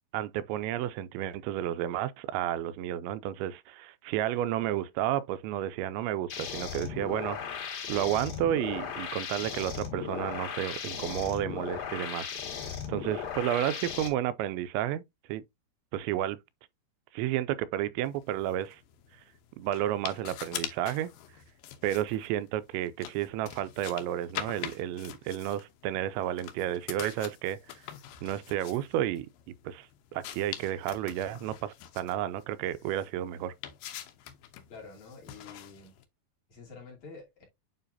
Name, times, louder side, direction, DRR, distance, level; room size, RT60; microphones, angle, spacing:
voice 1, 0.1-7.4 7.9-12.4 12.6-15.0 15.3-15.4 15.9-16.4 17.1-18.8 19.6-21.1 21.8-27.6 28.2-29.3 29.6-29.9 30.1-33.5, right 12 dB, 90° right, 2.9 m, -31 dB
sound 1, 6.3-14.1, left 7 dB, 60° left, 3.6 m, -37 dB
sound 2, 18.0-36.0, left 11 dB, 80° left, 2.0 m, -45 dB
voice 2, 34.7-36.0 36.5-37.4, left 4 dB, 45° left, 3.6 m, -48 dB
9.1 x 3.9 x 2.7 m
omnidirectional pair, 5.1 m